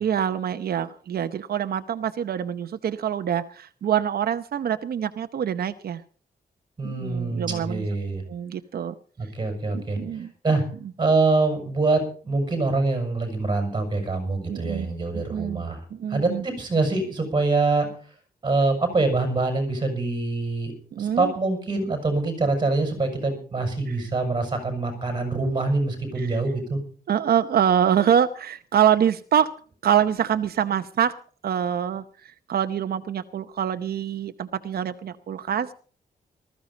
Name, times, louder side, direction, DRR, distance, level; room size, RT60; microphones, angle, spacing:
voice 1, 0.0-6.0 6.8-7.8 8.3-8.9 9.7-10.3 14.5-14.9 15.1-16.4 20.9-21.3 23.9-24.0 26.2-26.3 27.1-29.6 29.8-31.1 31.4-35.7, right 9 dB, 85° right, 9 dB, 0.8 m, -25 dB
voice 2, 6.8-8.2 9.2-10.0 10.4-10.6 11.0-15.8 16.1-17.9 18.4-20.7 21.0-26.8, right 3 dB, 30° right, 5 dB, 6.2 m, -24 dB
19.5 x 14.5 x 4.1 m, 0.42 s
wide cardioid pair, 165°, 16 cm